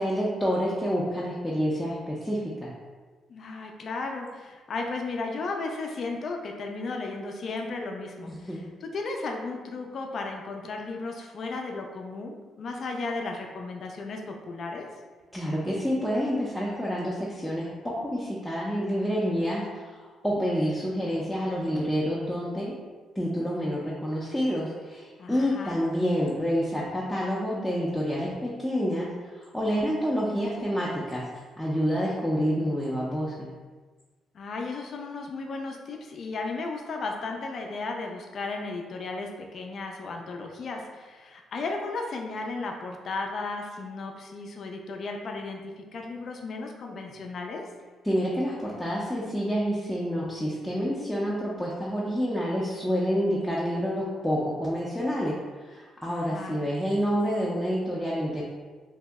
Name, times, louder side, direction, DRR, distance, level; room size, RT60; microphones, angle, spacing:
voice 1, 0.0-2.7 8.3-8.7 15.3-22.7 23.2-31.2 31.6-33.5 48.0-55.3 55.6-58.5, equal, 5° left, -7 dB, 0.5 m, -28 dB
voice 2, 3.3-14.9 25.2-25.8 34.3-47.6 56.1-56.6, left 3 dB, 55° left, 2 dB, 0.4 m, -35 dB
2.7 x 2.0 x 3.4 m, 1.4 s
cardioid pair, 90°, 0 cm